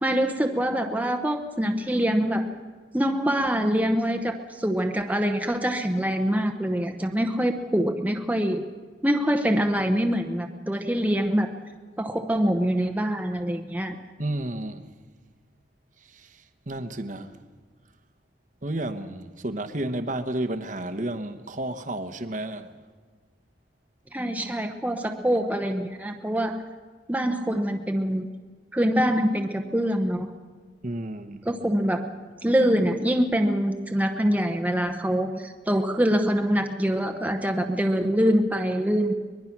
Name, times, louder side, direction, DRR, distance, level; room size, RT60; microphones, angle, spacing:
voice 1, 0.0-2.5 2.9-8.6 9.0-11.5 12.0-14.0 24.1-26.6 27.1-28.3 28.7-30.3 31.5-32.0 32.4-39.1, equal, 10° right, 0.9 m, -24 dB
voice 2, 14.2-14.8 16.1-17.4 18.6-22.7 30.8-31.4, right 1 dB, 45° right, 1.1 m, -32 dB
23.5 x 21.0 x 6.0 m
head